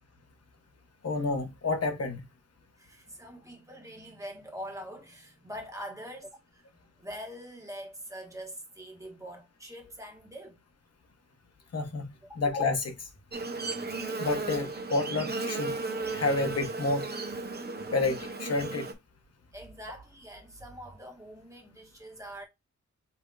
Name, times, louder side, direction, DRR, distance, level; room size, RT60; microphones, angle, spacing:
voice 1, 1.0-2.2 11.7-12.1 12.4-13.1 14.2-15.7 16.1-17.1 17.9-18.9, left 3 dB, 55° left, 1.0 m, -29 dB
voice 2, 2.8-10.6 13.6-13.7 16.1-16.2 17.7-17.9 19.5-22.4, equal, 10° right, 1.5 m, -44 dB
Buzz, 13.3-18.9, right 3 dB, 35° right, 0.8 m, -35 dB
5.6 x 3.5 x 2.4 m
wide cardioid pair, 160°, 30 cm